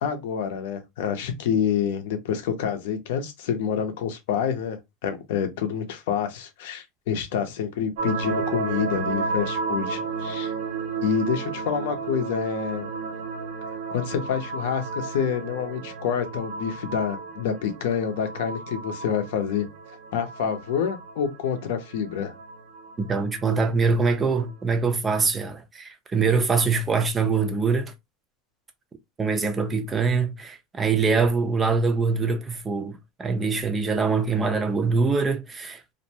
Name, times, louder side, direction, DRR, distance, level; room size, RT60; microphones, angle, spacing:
voice 1, 0.0-10.5 11.0-12.9 13.9-19.7 20.1-22.3, left 7 dB, 85° left, 0.6 m, -27 dB
sound 1, 8.0-24.5, right 4 dB, 80° right, 0.6 m, -33 dB
voice 2, 23.0-27.9 29.2-35.8, right 4 dB, 15° right, 0.3 m, -24 dB
2.5 x 2.1 x 2.8 m
supercardioid pair, 175°, 0 cm